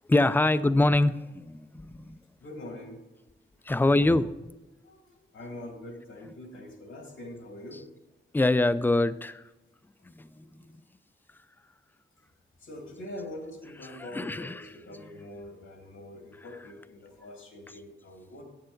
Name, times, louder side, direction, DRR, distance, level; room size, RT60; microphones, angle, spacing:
voice 1, 0.1-2.2 3.7-4.3 7.7-7.8 8.3-9.4 10.0-10.3 13.8-14.7, left 2 dB, 10° left, 14 dB, 0.3 m, -24 dB
voice 2, 2.4-3.0 4.7-7.8 10.3-10.7 12.6-18.4, left 1 dB, 90° left, 1 dB, 2.0 m, -44 dB
9.0 x 8.6 x 3.9 m, 1.0 s
wide cardioid pair, 110°, 21 cm